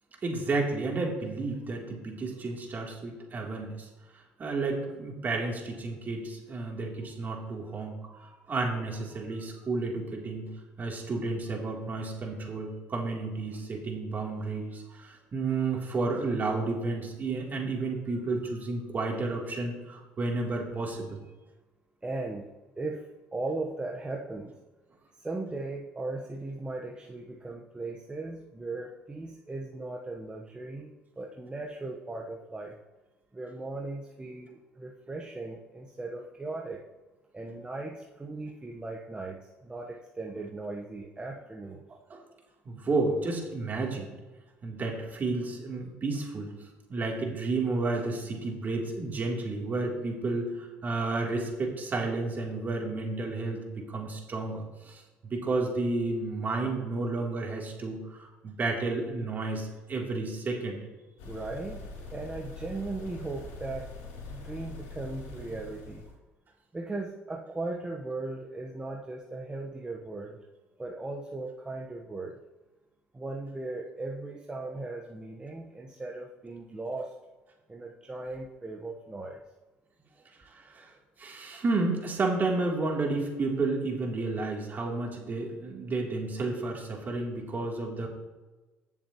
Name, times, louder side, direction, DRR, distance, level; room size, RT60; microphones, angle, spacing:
voice 1, 0.2-3.9 4.4-10.5 10.8-21.2 42.1-42.2 42.6-44.1 44.6-46.5 46.9-60.8 80.5-80.9 81.2-88.1, right 3 dB, 40° right, -1 dB, 3.2 m, -31 dB
voice 2, 22.0-22.5 22.8-24.6 25.2-32.7 33.3-36.8 37.3-41.9 61.2-63.9 64.3-66.0 66.7-70.4 70.8-72.4 73.1-77.1 77.7-79.4, right 2 dB, 20° right, 0 dB, 1.2 m, -38 dB
sound 1, 61.2-66.1, left 3 dB, 80° left, 3.1 m, -43 dB
19.0 x 7.3 x 3.1 m, 1.2 s
supercardioid pair, 75°, 5 cm